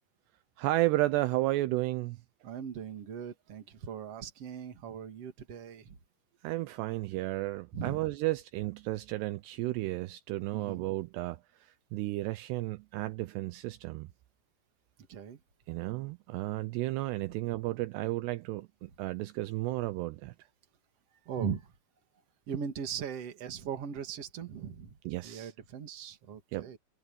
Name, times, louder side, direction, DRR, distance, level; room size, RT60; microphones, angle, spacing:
voice 1, 0.6-2.2 6.4-11.4 11.9-14.1 15.7-20.3 25.1-25.5 26.5-26.7, right 18 dB, 80° right, 2.7 m, -33 dB
voice 2, 2.4-6.0 7.7-8.0 10.5-10.9 15.1-15.4 21.3-21.7 22.5-25.0 25.2-26.8, right 7 dB, 45° right, 2.6 m, -39 dB
omnidirectional pair, 5.0 m